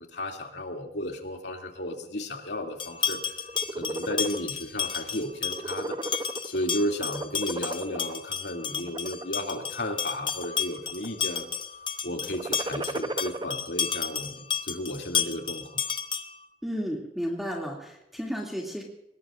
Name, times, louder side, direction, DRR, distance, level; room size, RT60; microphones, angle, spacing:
voice 1, 0.0-3.3 3.7-6.0 6.4-11.5 12.0-15.8, left 1 dB, 75° left, 2 dB, 2.7 m, -34 dB
sound 1, 2.8-16.5, left 7 dB, 30° left, 1.0 m, -32 dB
sound 2, 3.4-4.4 4.9-5.1 5.4-6.7 7.0-8.1 8.8-9.2 9.8-10.6 10.9-11.4 12.2-13.5, right 2 dB, 25° right, 0.8 m, -34 dB
voice 2, 16.6-18.8, equal, ahead, -1 dB, 2.6 m, -33 dB
24.0 x 20.5 x 2.6 m, 0.86 s
head